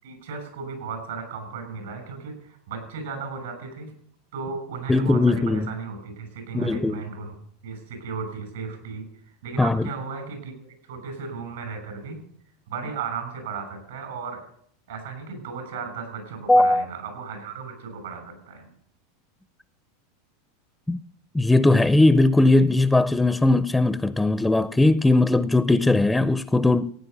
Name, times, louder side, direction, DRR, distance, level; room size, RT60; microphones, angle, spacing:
voice 1, 0.0-3.9 4.3-7.3 7.6-9.1 9.4-10.5 10.9-12.2 12.7-14.4 14.9-18.7, right 5 dB, 90° right, 6.7 m, -35 dB
voice 2, 4.9-5.7 6.5-7.0 9.6-9.9 16.5-16.9 20.9-21.0 21.3-26.9, left 2 dB, 5° left, 0.5 m, -19 dB
15.5 x 9.4 x 6.7 m
supercardioid pair, 125°, 0 cm